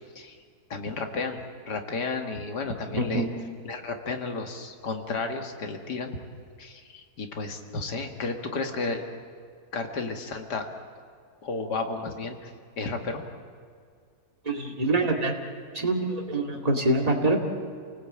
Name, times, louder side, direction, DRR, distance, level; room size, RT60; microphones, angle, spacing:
voice 1, 0.7-1.4 1.7-3.3 3.6-6.2 6.6-9.0 9.7-10.7 11.4-12.5 12.8-13.2, left 3 dB, 85° left, 4 dB, 2.5 m, -32 dB
voice 2, 3.0-3.3 14.4-15.3 15.7-17.4, right 2 dB, 25° right, 1 dB, 2.5 m, -25 dB
28.5 x 19.0 x 8.7 m, 2.1 s
omnidirectional pair, 1.7 m